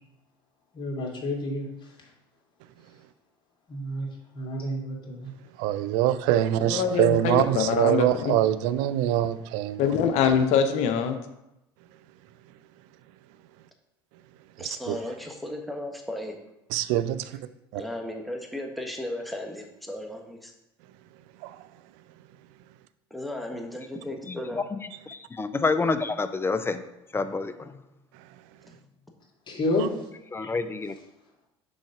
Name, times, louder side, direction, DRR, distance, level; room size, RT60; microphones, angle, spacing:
voice 1, 0.7-1.9 3.7-4.1 4.3-5.3 29.5-29.9 30.4-30.5, left 1 dB, 35° left, -2 dB, 2.1 m, -30 dB
voice 2, 5.6-9.9 14.6-15.0 16.7-17.2 17.7-17.8 21.4-21.6, right 12 dB, 65° right, 14 dB, 0.4 m, -24 dB
voice 3, 6.6-8.3 9.8-11.2, left 7 dB, 60° left, 8 dB, 0.8 m, -24 dB
voice 4, 14.6-16.4 17.7-20.5 23.1-24.6, left 1 dB, ahead, 1 dB, 1.4 m, -35 dB
voice 5, 25.1-26.8 27.1-27.7 30.3-30.9, left 4 dB, 20° left, 11 dB, 0.5 m, -28 dB
6.2 x 4.1 x 4.9 m, 0.90 s
hypercardioid pair, 70°, 13 cm